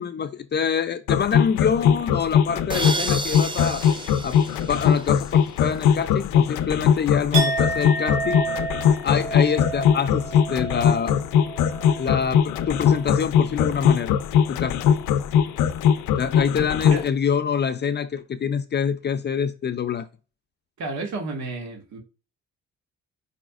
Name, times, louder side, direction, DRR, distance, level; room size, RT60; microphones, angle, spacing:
voice 1, 0.0-3.8 4.2-4.4 4.7-8.4 9.0-11.2 12.0-14.2 14.5-14.8 16.2-20.1, left 7 dB, 35° left, 0.4 m, -26 dB
sound 1, 1.1-17.1, left 8 dB, 90° left, 0.5 m, -20 dB
sound 2, 2.7-5.5, right 3 dB, 15° right, 0.5 m, -32 dB
Chink clink, 7.3-13.3 13.6-14.0, right 4 dB, 90° right, 2.7 m, -31 dB
voice 2, 20.8-22.0, right 3 dB, 65° right, 1.9 m, -31 dB
5.0 x 4.2 x 2.4 m
cardioid pair, 90°, 30 cm